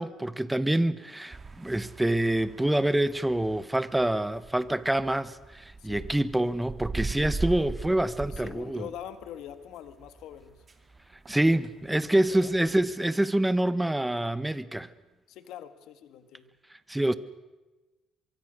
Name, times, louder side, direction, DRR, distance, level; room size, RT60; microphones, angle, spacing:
voice 1, 0.0-8.9 11.3-14.9 16.9-17.1, right 1 dB, 10° right, 1.1 m, -26 dB
sound 1, 1.3-12.9, right 3 dB, 30° right, 2.4 m, -40 dB
voice 2, 8.3-10.6 12.3-12.5 15.3-16.5, left 10 dB, 80° left, 1.9 m, -43 dB
24.0 x 23.5 x 6.6 m
cardioid pair, 100°, 0 cm